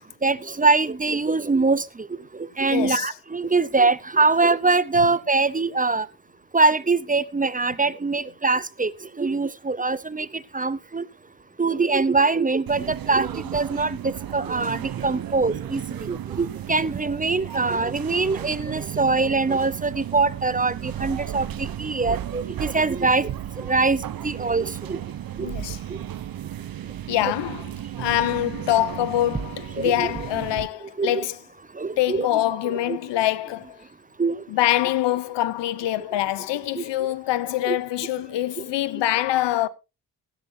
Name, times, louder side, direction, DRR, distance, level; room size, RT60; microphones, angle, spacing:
voice 1, 0.2-1.8 2.6-6.1 6.5-8.9 9.2-10.3 10.5-11.0 11.6-14.0 14.3-23.3 23.7-25.0 29.8-30.1 31.0-31.2 31.8-32.3 32.9-33.0 34.2-34.4 36.8-36.9 37.6-37.8, right 3 dB, 20° right, 0.7 m, -23 dB
voice 2, 2.7-3.1 25.4-25.8 27.1-27.7 28.0-31.4 32.0-33.8 34.5-39.7, left 14 dB, 75° left, 0.8 m, -24 dB
sound 1, 12.7-30.7, right 11 dB, 50° right, 0.8 m, -34 dB
16.0 x 12.0 x 2.7 m
supercardioid pair, 50°, 43 cm